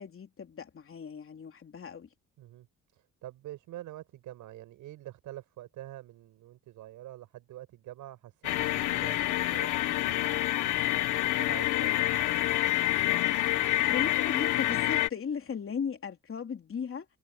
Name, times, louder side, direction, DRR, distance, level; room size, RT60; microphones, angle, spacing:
voice 1, 0.0-2.1 13.9-17.1, left 6 dB, 45° left, 3.6 m, -36 dB
voice 2, 2.9-10.9 11.1-12.1, right 14 dB, 85° right, 7.7 m, -46 dB
sound 1, 8.4-15.1, left 16 dB, 90° left, 1.4 m, -27 dB
cardioid pair, 90°, 30 cm